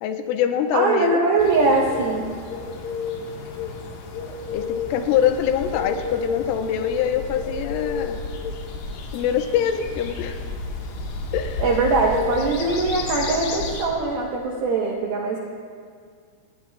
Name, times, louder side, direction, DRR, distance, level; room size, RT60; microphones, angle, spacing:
voice 1, 0.0-1.3 4.5-8.2 9.1-10.4 11.3-11.6 12.1-12.4, left 9 dB, 90° left, 6 dB, 3.3 m, -24 dB
voice 2, 0.7-2.3 11.6-15.4, right 3 dB, 75° right, -2 dB, 2.2 m, -21 dB
sound 1, 1.4-13.9, left 4 dB, 65° left, 3.4 m, -32 dB
29.0 x 19.0 x 2.4 m, 2.1 s
omnidirectional pair, 5.8 m